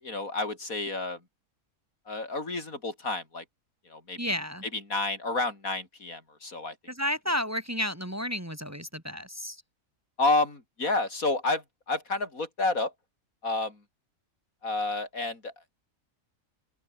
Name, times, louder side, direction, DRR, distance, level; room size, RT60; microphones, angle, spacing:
voice 1, 0.0-1.2 2.1-3.4 3.9-4.3 4.7-6.7 10.2-12.9 13.4-13.8 14.6-15.5, left 3 dB, 85° left, 4.9 m, -30 dB
voice 2, 4.2-4.6 6.9-9.6, equal, 10° right, 2.8 m, -32 dB
open air
omnidirectional pair, 1.4 m